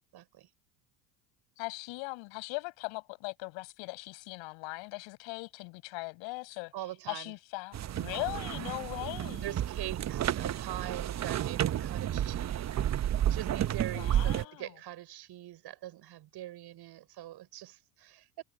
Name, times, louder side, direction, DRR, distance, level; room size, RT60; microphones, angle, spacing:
voice 1, 0.1-0.5 6.7-7.3 8.1-8.8 9.4-18.4, right 14 dB, 50° right, 6.4 m, -43 dB
voice 2, 1.6-6.7 7.1-9.5 13.9-14.7, left 27 dB, 65° left, 7.0 m, -39 dB
sound 1, 7.7-14.4, right 11 dB, 35° right, 1.1 m, -31 dB
hypercardioid pair, 75°, 49 cm